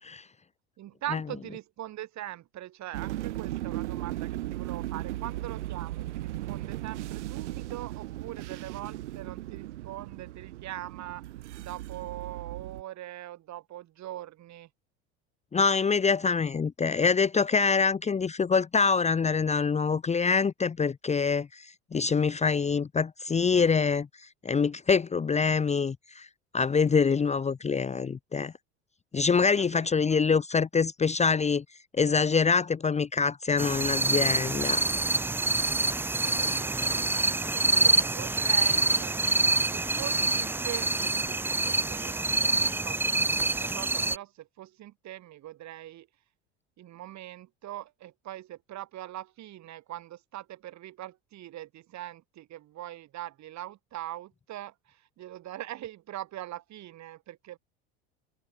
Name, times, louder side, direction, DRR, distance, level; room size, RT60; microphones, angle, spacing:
voice 1, 0.8-11.2 11.6-14.7 29.4-30.2 36.2-39.2 39.7-46.1 46.8-57.6, right 14 dB, 50° right, 7.6 m, -42 dB
sound 1, 2.9-12.8, right 16 dB, 85° right, 1.6 m, -37 dB
voice 2, 15.5-24.1 24.4-26.3 26.5-28.5 29.1-31.6 32.0-34.8, left 5 dB, 20° left, 0.9 m, -25 dB
sound 2, 33.6-44.2, right 3 dB, 5° right, 0.4 m, -26 dB
hypercardioid pair, 80°, 34 cm